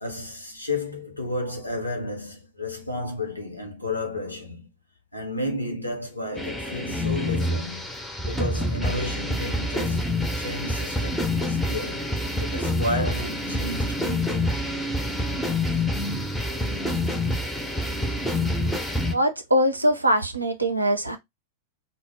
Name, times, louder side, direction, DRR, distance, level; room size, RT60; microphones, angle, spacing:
voice 1, 0.0-4.7 5.1-7.9 8.2-10.1 10.4-12.1 12.4-14.5, left 1 dB, 85° left, 0.7 m, -32 dB
sound 1, 6.4-19.1, left 1 dB, 5° left, 0.5 m, -27 dB
voice 2, 19.1-21.2, equal, 85° right, 0.4 m, -22 dB
2.0 x 2.0 x 3.2 m
figure-of-eight pair, 90°, 0 cm